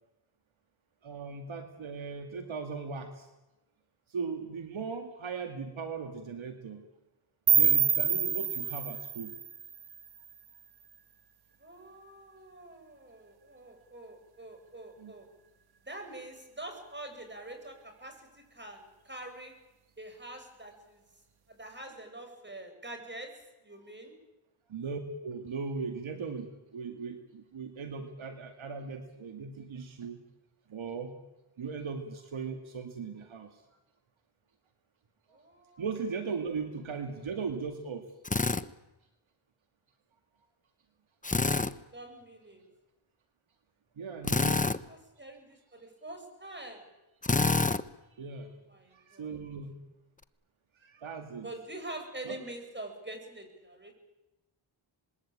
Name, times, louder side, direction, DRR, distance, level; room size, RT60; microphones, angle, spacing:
voice 1, 1.0-3.3 4.1-6.8 7.5-9.3 15.0-15.1 24.7-30.2 30.7-31.2 31.6-33.6 35.8-38.1 44.0-44.8 48.2-48.5 48.9-49.8 50.8-51.5 52.2-52.4, right 5 dB, 70° right, 6 dB, 2.4 m, -38 dB
sound 1, 7.5-10.4, right 7 dB, 50° right, 1.3 m, -27 dB
voice 2, 11.6-15.3 15.8-19.5 20.0-21.0 21.5-24.1 35.3-35.9 41.9-42.6 44.9-46.9 48.4-49.4 51.4-53.9, right 1 dB, 20° right, 5 dB, 7.7 m, -45 dB
Drill, 38.3-38.6 41.2-41.7 44.2-44.8 47.2-47.8, left 3 dB, 15° left, 1.0 m, -26 dB
26.5 x 21.0 x 9.0 m, 1.0 s
cardioid pair, 60°, 49 cm